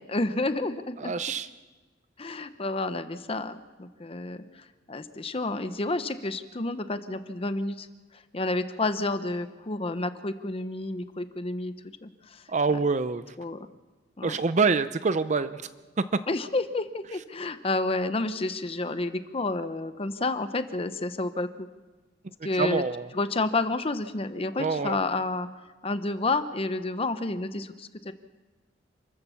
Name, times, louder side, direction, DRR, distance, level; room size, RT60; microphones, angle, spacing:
voice 1, 0.0-1.1 2.2-4.4 4.9-7.9 8.1-11.7 12.0-12.4 12.7-12.8 13.4-13.7 14.2-14.4 16.3-21.7 22.4-22.8 23.1-25.5 25.8-28.1, left 2 dB, 35° left, 10 dB, 0.8 m, -30 dB
voice 2, 1.0-1.5 12.5-13.2 14.2-15.7 22.6-23.1 24.6-25.0, right 4 dB, 40° right, 12 dB, 0.6 m, -26 dB
28.0 x 14.5 x 7.0 m, 1.2 s
head